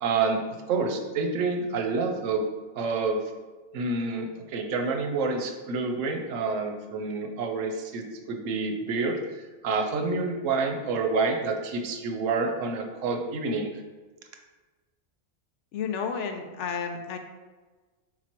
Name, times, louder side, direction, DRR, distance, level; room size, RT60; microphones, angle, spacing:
voice 1, 0.0-0.4 0.7-2.4 2.8-3.2 3.7-13.7, right 4 dB, 85° right, 4 dB, 1.0 m, -28 dB
voice 2, 15.7-17.2, left 6 dB, 75° left, 5 dB, 0.8 m, -31 dB
4.6 x 3.9 x 2.9 m, 1.3 s
omnidirectional pair, 1.3 m